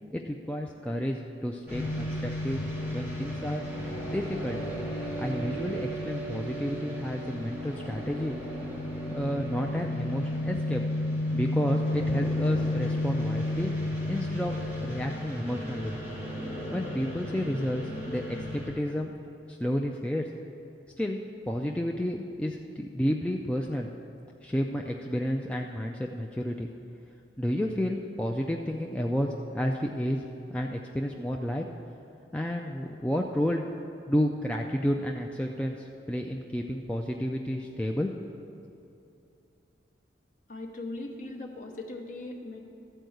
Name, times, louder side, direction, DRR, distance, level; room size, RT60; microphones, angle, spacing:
voice 1, 0.1-2.6 2.9-3.6 4.1-4.6 5.2-8.4 9.1-10.8 11.3-13.7 14.1-16.0 16.7-19.2 19.5-20.3 21.0-21.2 21.5-23.9 24.4-26.7 27.4-30.2 30.5-31.6 32.3-33.7 34.1-38.1, equal, 5° left, 1 dB, 0.3 m, -31 dB
sound 1, 1.7-18.7, left 1 dB, 10° right, 2.8 m, -33 dB
voice 2, 40.5-42.6, left 2 dB, 45° left, 1 dB, 0.9 m, -39 dB
13.0 x 4.5 x 7.8 m, 2.8 s
head